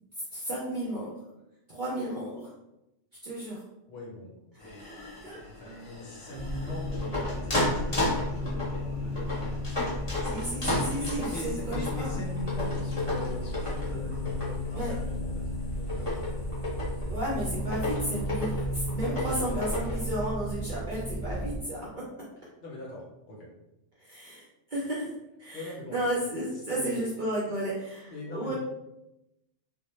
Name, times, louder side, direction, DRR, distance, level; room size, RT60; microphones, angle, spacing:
voice 1, 0.3-1.1 1.7-2.5 3.2-3.6 5.2-5.4 10.2-12.2 14.7-15.0 17.0-21.9 24.0-25.1 25.4-28.5, right 1 dB, 55° right, -6 dB, 0.5 m, -33 dB
voice 2, 3.9-10.0 11.0-16.5 19.0-19.6 22.6-23.5 25.5-26.3 26.7-27.1 28.1-28.5, left 1 dB, 60° left, -3 dB, 0.9 m, -42 dB
sound 1, 4.6-20.3, left 2 dB, 30° left, 0.7 m, -34 dB
sound 2, 6.3-21.6, left 1 dB, 10° right, 0.6 m, -34 dB
2.1 x 2.1 x 3.0 m, 0.90 s
omnidirectional pair, 1.3 m